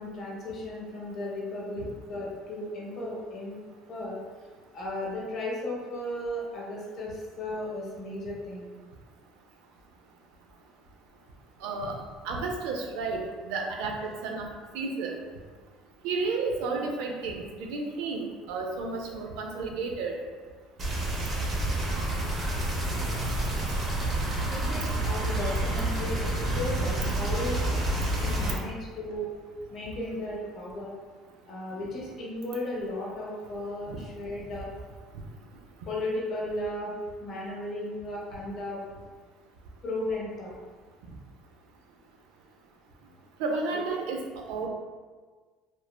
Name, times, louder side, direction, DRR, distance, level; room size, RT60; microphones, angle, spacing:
voice 1, 0.0-3.6 3.9-4.2 4.7-8.7 24.5-27.7 28.2-29.3 29.7-30.9 31.5-34.7 35.9-36.9 37.2-38.8 39.8-40.5, left 1 dB, 45° left, -4 dB, 0.8 m, -35 dB
voice 2, 11.6-12.0 12.2-13.2 13.5-14.4 14.7-15.1 16.0-18.2 18.5-20.2 33.9-34.0 43.4-44.7, right 3 dB, 85° right, 2 dB, 0.4 m, -32 dB
sound 1, 20.8-28.5, right 1 dB, 35° right, 0.6 m, -28 dB
3.0 x 2.0 x 2.3 m, 1.4 s
cardioid pair, 140°, 0 cm